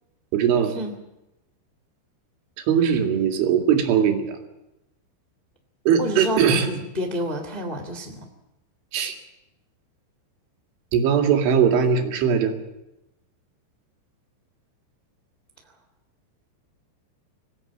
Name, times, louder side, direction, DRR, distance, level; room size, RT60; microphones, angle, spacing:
voice 1, 0.3-0.8 2.7-4.4 5.9-6.7 8.9-9.2 10.9-12.5, right 7 dB, 85° right, 3 dB, 4.7 m, -20 dB
voice 2, 6.0-8.2, equal, 25° left, 4 dB, 1.2 m, -29 dB
25.5 x 16.0 x 8.7 m, 0.95 s
omnidirectional pair, 5.4 m